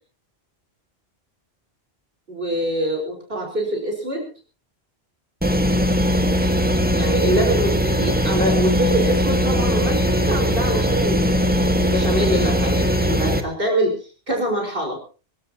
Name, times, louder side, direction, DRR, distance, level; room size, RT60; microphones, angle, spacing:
voice 1, 2.3-4.3 6.9-15.0, right 1 dB, 55° right, 1 dB, 4.9 m, -24 dB
sound 1, 5.4-13.4, equal, 10° right, 1.7 m, -20 dB
23.5 x 16.0 x 2.9 m, 0.36 s
omnidirectional pair, 1.1 m